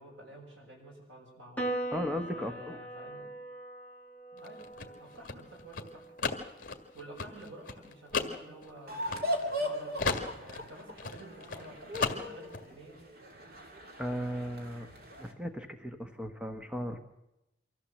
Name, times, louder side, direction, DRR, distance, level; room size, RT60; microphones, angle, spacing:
voice 1, 0.0-1.7 2.3-3.3 4.3-6.3 6.9-9.0 9.4-13.0, right 1 dB, 90° right, -1 dB, 7.2 m, -50 dB
Piano, 1.6-8.2, right 1 dB, 10° left, 2.2 m, -42 dB
voice 2, 1.9-2.8 14.0-14.9 15.2-17.0, equal, 5° right, 7 dB, 1.1 m, -36 dB
sound 1, 4.4-9.7 10.0-11.7 11.9-12.6, left 4 dB, 50° left, 1.8 m, -35 dB
sound 2, 8.9-15.3, equal, 55° right, 2.5 m, -38 dB
24.0 x 14.5 x 7.5 m, 0.91 s
head